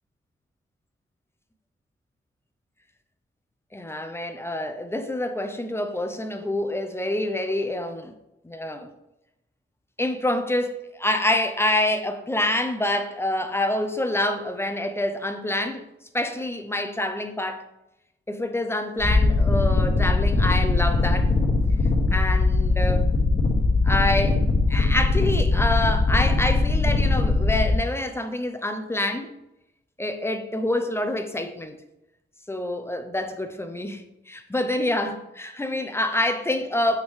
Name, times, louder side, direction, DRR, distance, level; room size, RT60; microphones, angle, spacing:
voice 1, 3.7-8.1 8.4-8.9 10.0-15.9 16.1-17.7 18.3-21.3 22.1-23.1 23.8-24.4 24.7-29.3 30.0-31.8 32.5-37.0, left 1 dB, 10° left, 6 dB, 0.5 m, -26 dB
sound 1, 19.0-27.8, left 3 dB, 65° left, 1.9 m, -21 dB
8.7 x 3.6 x 3.2 m, 0.88 s
wide cardioid pair, 150°, 20 cm